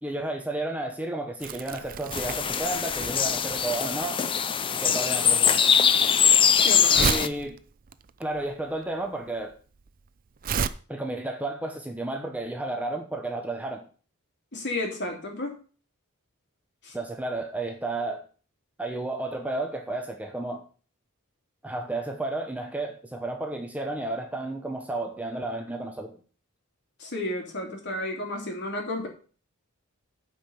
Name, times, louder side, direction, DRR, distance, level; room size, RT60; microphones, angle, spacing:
voice 1, 0.0-4.2 4.7-5.7 7.0-7.6 8.2-9.5 10.9-13.9 16.9-18.2 18.8-20.6 21.6-26.2, right 2 dB, 5° right, 3 dB, 1.0 m, -32 dB
Crumpling crinkling, 1.4-10.7, right 6 dB, 40° right, 0.5 m, -33 dB
sound 1, 2.1-7.3, left 7 dB, 25° left, 0.4 m, -22 dB
voice 2, 6.6-7.1 14.5-15.5 16.8-16.9 27.0-29.1, left 1 dB, 50° left, 1 dB, 3.0 m, -32 dB
9.3 x 5.3 x 7.0 m, 0.39 s
head